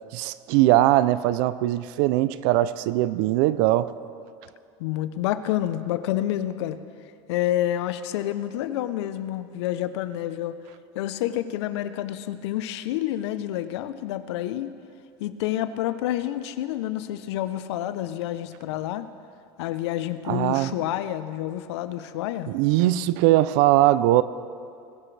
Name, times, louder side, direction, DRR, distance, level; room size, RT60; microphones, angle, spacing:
voice 1, 0.1-3.9 20.3-20.7 22.5-24.2, right 15 dB, 50° right, 16 dB, 0.4 m, -20 dB
voice 2, 4.8-6.8 7.3-10.6 10.9-14.7 15.2-19.1 19.6-22.5, left 13 dB, 90° left, 12 dB, 0.7 m, -28 dB
20.5 x 12.0 x 3.3 m, 2.4 s
cardioid pair, 180°, 14 cm